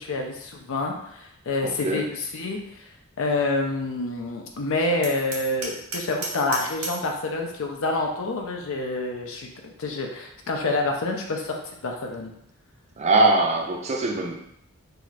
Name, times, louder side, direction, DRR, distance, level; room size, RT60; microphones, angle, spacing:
voice 1, 0.0-2.6 3.2-9.5 9.8-12.3, left 2 dB, 65° left, 2 dB, 0.5 m, -27 dB
voice 2, 1.6-2.1 13.0-14.3, right 2 dB, 30° right, 2 dB, 0.4 m, -22 dB
Hammer, 5.0-7.1, right 3 dB, 80° right, 0.7 m, -34 dB
2.7 x 2.4 x 3.2 m, 0.75 s
head